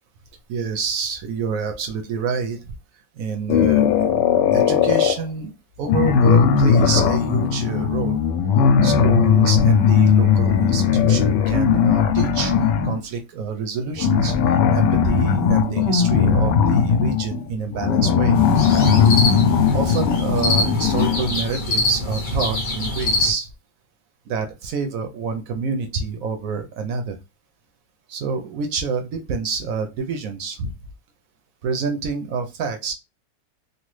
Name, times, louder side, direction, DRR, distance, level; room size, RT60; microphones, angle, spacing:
voice 1, 0.5-2.7 3.2-3.9 4.5-5.5 5.8-8.2 8.8-12.5 12.8-14.4 14.7-18.4 19.7-23.5 24.3-27.2 28.1-30.7 31.6-32.9, right 5 dB, 70° right, 6 dB, 0.8 m, -27 dB
sound 1, 3.5-5.2 5.8-13.0 14.0-21.4, left 7 dB, 80° left, 1.2 m, -18 dB
sound 2, 18.3-23.3, left 2 dB, 40° left, 0.7 m, -24 dB
3.2 x 2.3 x 3.1 m, 0.23 s
omnidirectional pair, 1.9 m